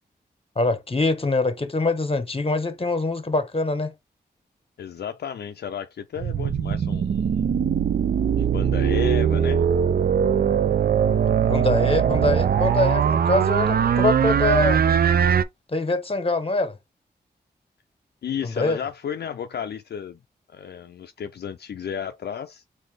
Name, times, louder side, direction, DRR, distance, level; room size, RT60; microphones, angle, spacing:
voice 1, 0.6-3.9 11.5-14.8 15.7-16.7 18.4-18.8, left 2 dB, 30° left, 1.0 m, -24 dB
voice 2, 4.8-7.6 8.4-9.7 18.2-20.2 20.5-22.6, left 8 dB, 65° left, 0.4 m, -33 dB
sound 1, 6.2-15.4, right 8 dB, 55° right, 0.4 m, -21 dB
4.0 x 2.6 x 3.3 m
cardioid pair, 45°, 18 cm